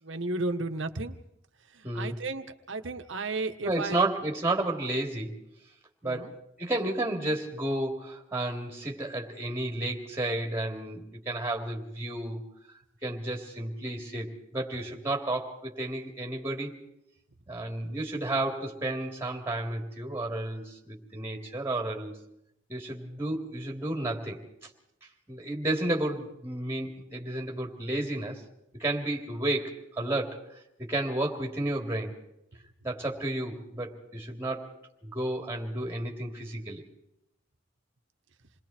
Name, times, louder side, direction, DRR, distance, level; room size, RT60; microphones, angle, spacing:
voice 1, 0.0-1.2 1.7-4.0 6.0-6.3, right 2 dB, 70° right, 7 dB, 1.5 m, -33 dB
voice 2, 1.8-2.2 3.6-5.4 6.0-12.4 13.0-16.7 17.5-22.1 22.7-24.7 25.3-28.4 28.8-30.4 30.8-32.1 32.8-36.8, right 1 dB, 15° right, 1 dB, 3.3 m, -32 dB
28.0 x 21.5 x 4.5 m, 0.79 s
head